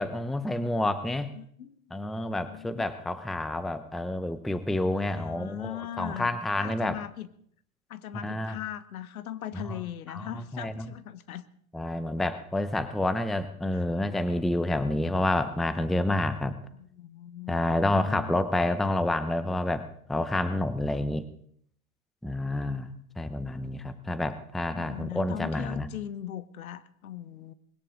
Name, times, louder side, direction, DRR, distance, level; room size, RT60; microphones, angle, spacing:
voice 1, 0.0-1.3 1.9-7.0 8.2-8.5 9.7-9.8 10.1-10.9 11.7-16.6 17.5-21.2 22.2-22.9 23.2-25.9, left 1 dB, ahead, 12 dB, 0.6 m, -29 dB
voice 2, 1.1-1.8 2.2-2.8 4.9-7.3 7.9-11.4 13.7-13.8 16.7-18.4 24.7-27.5, left 11 dB, 75° left, 15 dB, 1.3 m, -40 dB
21.0 x 17.0 x 3.8 m, 0.65 s
hypercardioid pair, 115°, 43 cm